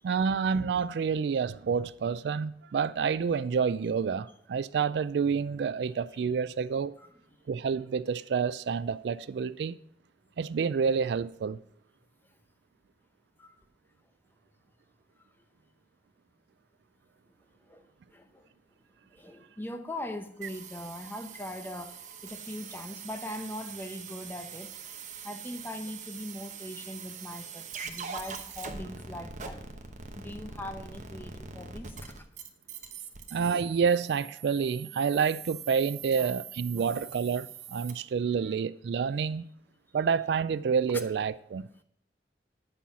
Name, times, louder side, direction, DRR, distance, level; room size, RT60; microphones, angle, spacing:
voice 1, 0.0-6.9 7.5-9.8 10.4-11.6 33.3-39.5 39.9-41.8, right 6 dB, 70° right, 0.3 m, -28 dB
voice 2, 17.6-18.4 19.1-24.9 25.2-29.6 30.2-32.3 36.2-36.4 36.8-36.9 40.9-41.0, left 1 dB, 10° left, 0.8 m, -41 dB
sound 1, 20.4-37.9, right 6 dB, 45° right, 1.0 m, -43 dB
9.9 x 5.6 x 5.7 m
head